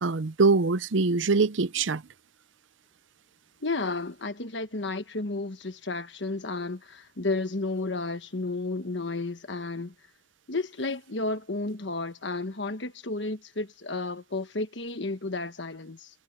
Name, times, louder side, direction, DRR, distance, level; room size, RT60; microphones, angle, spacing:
voice 1, 0.0-2.0, right 4 dB, 85° right, 0.7 m, -23 dB
voice 2, 3.6-9.9 10.5-16.1, left 3 dB, 70° left, 1.4 m, -32 dB
head